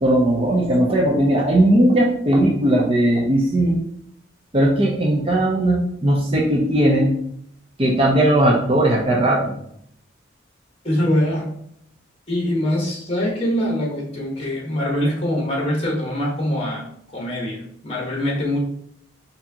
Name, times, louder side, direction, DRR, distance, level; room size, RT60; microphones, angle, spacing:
voice 1, 0.0-3.8 4.5-7.1 7.8-9.5, right 1 dB, 30° right, -1 dB, 0.6 m, -18 dB
voice 2, 10.8-11.5 12.3-16.8 17.1-18.6, left 1 dB, 30° left, -2 dB, 1.2 m, -23 dB
4.6 x 2.7 x 2.8 m, 0.70 s
head